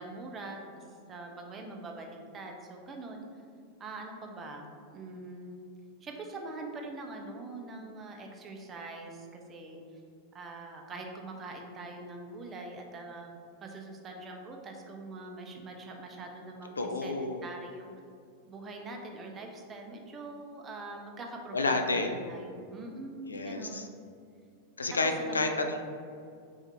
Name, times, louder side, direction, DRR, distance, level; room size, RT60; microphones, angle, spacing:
voice 1, 0.0-3.2 3.8-4.7 4.9-5.6 6.0-9.8 10.3-13.3 13.6-17.9 18.5-23.9 25.0-25.4, right 2 dB, 25° right, 2 dB, 0.5 m, -43 dB
voice 2, 16.8-17.4 21.5-22.2 23.3-23.9 24.8-25.8, left 3 dB, 75° left, 5 dB, 0.3 m, -30 dB
3.6 x 3.2 x 3.1 m, 2.3 s
figure-of-eight pair, 90°, 0 cm